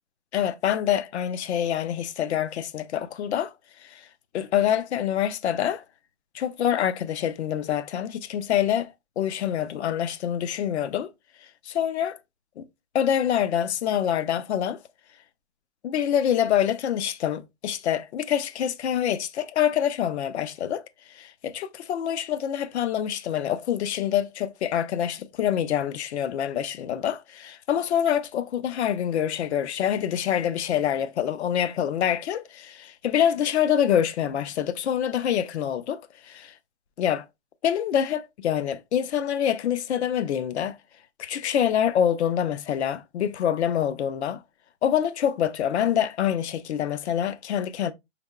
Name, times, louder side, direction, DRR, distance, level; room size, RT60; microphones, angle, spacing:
voice 1, 0.3-3.5 3.8-4.1 4.3-5.8 6.3-11.1 11.7-12.2 12.6-12.7 12.9-14.8 15.8-20.8 21.1-36.5 37.0-37.3 37.6-40.8 41.2-44.4 44.8-47.9, left 9 dB, 65° left, 0.6 m, -26 dB
5.6 x 3.4 x 2.3 m
hypercardioid pair, 160°, 37 cm